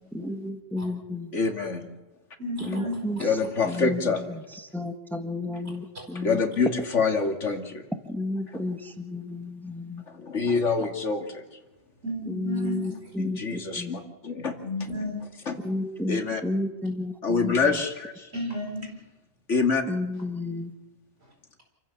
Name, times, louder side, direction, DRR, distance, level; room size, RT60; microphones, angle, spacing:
voice 1, 0.1-1.3 2.7-3.2 3.6-4.0 4.7-6.4 8.1-10.0 12.3-14.0 15.6-17.5 19.9-20.7, left 2 dB, ahead, 1.5 m, -32 dB
voice 2, 1.3-1.9 2.7-2.8 3.2-4.2 6.1-7.9 8.5-8.6 10.1-11.6 13.2-14.6 15.5-15.6 16.1-16.4 17.2-18.3 19.5-19.8, left 4 dB, 90° left, 2.6 m, -26 dB
voice 3, 2.4-3.3 12.0-13.1 14.6-15.3 18.3-18.9 21.2-21.3, equal, 60° right, 5.1 m, -33 dB
28.0 x 15.0 x 7.2 m
omnidirectional pair, 1.2 m